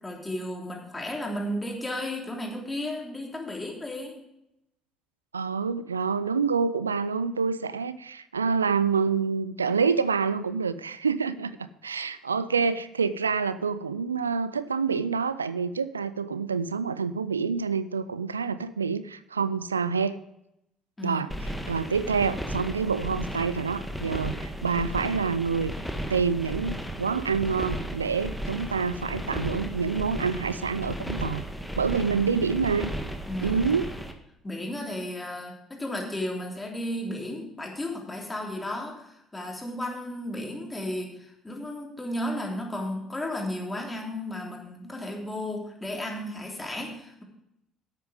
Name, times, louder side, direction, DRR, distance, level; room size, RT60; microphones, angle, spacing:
voice 1, 0.0-4.2 21.0-21.2 32.0-32.4 33.3-33.6 34.4-47.2, left 1 dB, 15° left, 0 dB, 3.3 m, -34 dB
voice 2, 5.3-20.1 21.0-25.7 26.1-31.5 31.8-32.9 33.4-33.9, right 5 dB, 90° right, 15 dB, 0.3 m, -27 dB
sound 1, 21.3-34.1, equal, ahead, 1.7 m, -35 dB
11.0 x 8.1 x 5.1 m, 0.83 s
hypercardioid pair, 55°, 0 cm